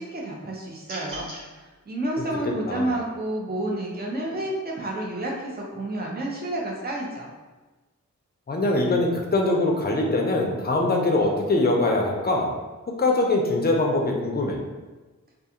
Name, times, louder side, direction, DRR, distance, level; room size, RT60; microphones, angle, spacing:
voice 1, 0.0-7.3, right 1 dB, 30° right, -3 dB, 0.5 m, -30 dB
sound 1, 0.8-1.4, right 1 dB, 90° right, 0.7 m, -37 dB
voice 2, 2.4-2.9 8.5-12.5 13.0-14.6, left 2 dB, 30° left, 1 dB, 0.5 m, -23 dB
2.4 x 2.3 x 2.8 m, 1.2 s
wide cardioid pair, 65°, 30 cm